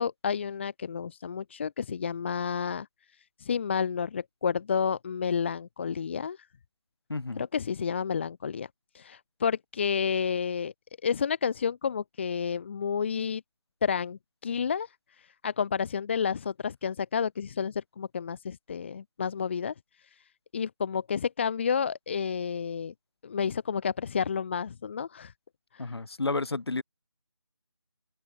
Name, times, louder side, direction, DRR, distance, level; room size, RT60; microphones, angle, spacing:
voice 1, 0.0-2.9 3.4-6.4 7.4-8.7 8.9-10.7 11.0-13.4 13.8-14.9 15.4-19.7 20.5-22.9 23.2-25.3 25.7-25.9, left 6 dB, 25° left, 1.7 m, -30 dB
voice 2, 7.1-7.5 25.8-26.8, left 3 dB, 60° left, 7.7 m, -31 dB
figure-of-eight pair, 170°, 15 cm